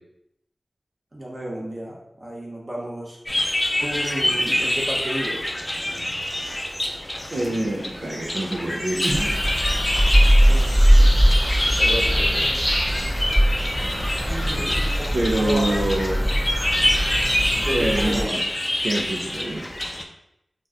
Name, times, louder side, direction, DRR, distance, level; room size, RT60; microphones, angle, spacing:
voice 1, 1.1-3.2 3.8-5.4 10.5-10.7 11.8-12.4 14.7-15.7 17.5-18.3, equal, 40° right, -3 dB, 0.8 m, -31 dB
sound 1, 3.3-20.0, left 1 dB, 25° left, 0.4 m, -26 dB
voice 2, 7.3-9.4 14.3-14.8 15.1-16.2 17.7-18.4 18.8-19.7, right 1 dB, 80° right, -2 dB, 0.4 m, -26 dB
sound 2, 9.1-18.2, equal, 15° right, 1.4 m, -20 dB
3.9 x 2.1 x 2.4 m, 0.81 s
wide cardioid pair, 70°, 0 cm